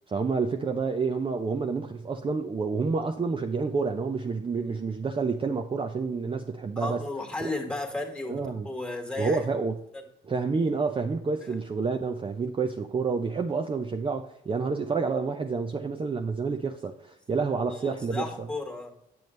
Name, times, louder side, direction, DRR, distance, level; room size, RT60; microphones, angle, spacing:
voice 1, 0.1-7.0 7.4-7.5 8.3-8.7 9.2-9.8 10.3-18.3, right 4 dB, 25° right, 5 dB, 0.6 m, -29 dB
voice 2, 6.8-9.4 11.4-11.5 17.7-19.0, left 2 dB, 5° left, 3 dB, 1.7 m, -34 dB
7.9 x 7.0 x 3.2 m, 0.79 s
cardioid pair, 90°, 20 cm